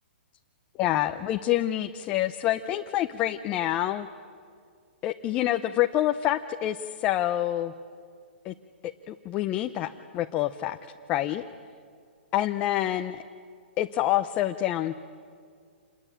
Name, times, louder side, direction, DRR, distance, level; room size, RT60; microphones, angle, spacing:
voice 1, 0.8-4.1 5.0-7.7 8.4-8.5 8.8-10.8 11.1-11.4 12.3-13.2 13.8-15.0, left 13 dB, 20° left, 6 dB, 0.6 m, -27 dB
27.5 x 21.5 x 8.7 m, 2.2 s
hypercardioid pair, 155°, 6 cm